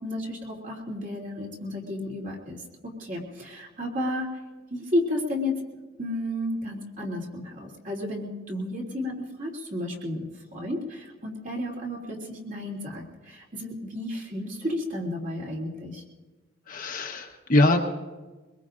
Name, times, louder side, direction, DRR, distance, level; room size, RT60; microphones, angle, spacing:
voice 1, 0.0-4.4 4.7-5.6 6.0-16.0, left 1 dB, 45° right, -2 dB, 3.0 m, -32 dB
voice 2, 16.7-17.8, left 2 dB, 45° left, 2 dB, 1.3 m, -22 dB
23.5 x 21.5 x 2.6 m, 1.3 s
head